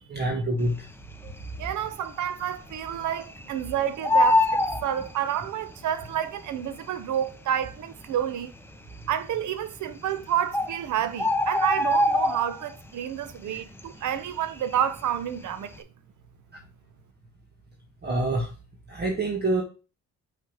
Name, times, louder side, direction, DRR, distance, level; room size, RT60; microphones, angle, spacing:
voice 1, 0.1-0.7 18.0-18.5 18.9-19.6, right 2 dB, 35° right, 1.4 m, -26 dB
Bird, 1.1-1.7 2.1-2.2 2.4-3.6 3.9-5.7 6.6-6.7 7.3-7.4 7.6-7.7 8.3-8.8 9.8-9.9 10.2-10.3 10.5-12.8 13.2-13.5 13.8-15.2 15.5-15.8, left 2 dB, 10° left, 0.7 m, -24 dB
voice 2, 1.6-8.5 9.1-15.7, right 10 dB, 75° right, 0.8 m, -29 dB
5.7 x 5.5 x 3.0 m
cardioid pair, 90°, 30 cm